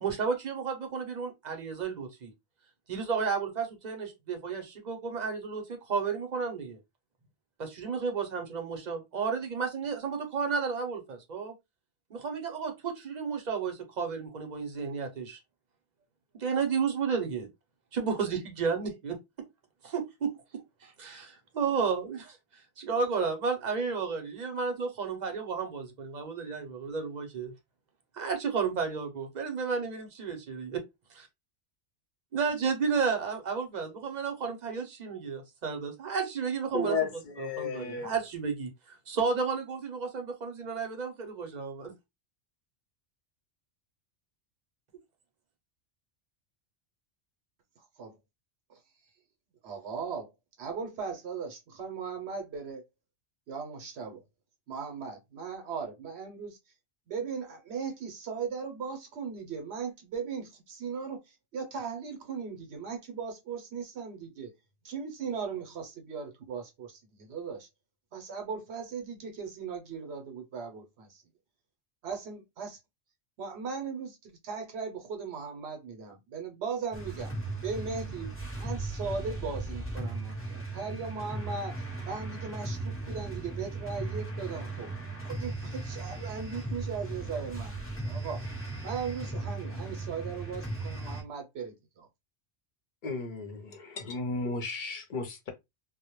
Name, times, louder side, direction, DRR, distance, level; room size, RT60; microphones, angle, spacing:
voice 1, 0.0-2.3 2.9-6.8 7.6-11.5 12.1-15.4 16.4-17.5 17.9-19.2 19.8-20.3 20.8-22.4 22.8-27.5 28.2-30.8 32.3-37.0 37.4-41.9, right 5 dB, 50° right, 0.7 m, -32 dB
voice 2, 36.7-38.1 93.0-95.5, left 4 dB, 55° left, 0.6 m, -34 dB
voice 3, 49.6-50.3 50.6-52.8 53.5-54.2 54.7-56.6 57.1-64.5 64.8-67.7 68.1-71.2 72.0-72.8 73.4-77.3 77.6-84.9 85.2-88.5 88.8-92.1, right 5 dB, 75° right, 0.9 m, -38 dB
sound 1, 76.9-91.2, right 2 dB, 15° left, 0.6 m, -37 dB
2.1 x 2.0 x 2.9 m
omnidirectional pair, 1.1 m